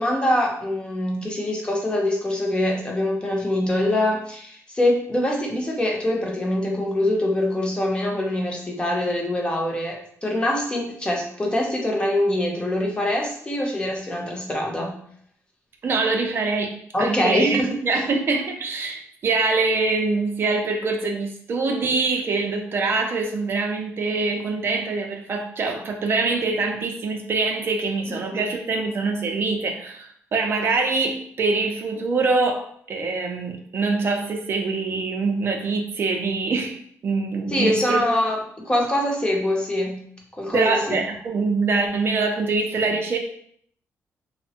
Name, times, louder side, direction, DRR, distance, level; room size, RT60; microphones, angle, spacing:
voice 1, 0.0-15.0 16.9-17.8 28.1-28.5 37.5-40.1 40.4-41.0, left 1 dB, 20° left, -1 dB, 0.6 m, -24 dB
voice 2, 15.8-16.7 17.0-36.8 37.0-38.0 40.5-43.2, right 3 dB, 45° right, 3 dB, 0.4 m, -24 dB
3.2 x 2.0 x 2.7 m, 0.64 s
wide cardioid pair, 145°, 5 cm